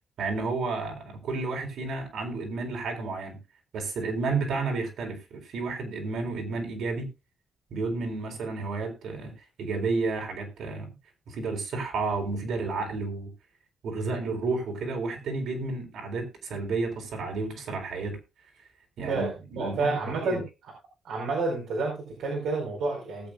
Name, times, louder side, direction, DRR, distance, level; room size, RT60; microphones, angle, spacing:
voice 1, 0.2-3.4 3.7-7.1 7.7-9.3 9.6-10.9 11.3-13.3 13.8-18.2 19.0-19.2 19.5-19.9 20.2-20.4, right 3 dB, 70° right, 3 dB, 4.2 m, -31 dB
voice 2, 19.1-20.4 21.0-23.3, right 3 dB, 90° right, 0 dB, 4.7 m, -29 dB
19.0 x 8.5 x 2.4 m, 0.27 s
wide cardioid pair, 160°, 0 cm